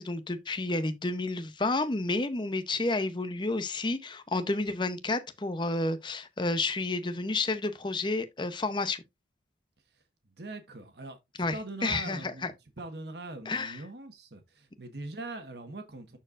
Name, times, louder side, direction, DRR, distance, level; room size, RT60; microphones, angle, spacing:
voice 1, 0.0-9.0 11.4-12.5 13.5-13.8, left 2 dB, 25° left, 0.7 m, -30 dB
voice 2, 10.4-16.2, right 2 dB, 60° right, 1.4 m, -42 dB
12.5 x 4.5 x 2.5 m
head